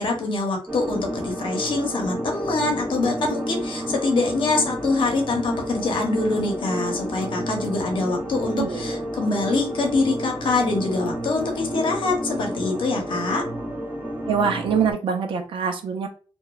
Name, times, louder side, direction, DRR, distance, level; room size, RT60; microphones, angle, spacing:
voice 1, 0.0-13.4, left 3 dB, 60° left, 1 dB, 0.8 m, -24 dB
sound 1, 0.7-14.9, equal, 20° right, 1.0 m, -31 dB
voice 2, 8.4-9.0 14.3-16.1, right 6 dB, 65° right, 5 dB, 0.5 m, -24 dB
2.9 x 2.2 x 2.3 m, 0.38 s
wide cardioid pair, 170°, 10 cm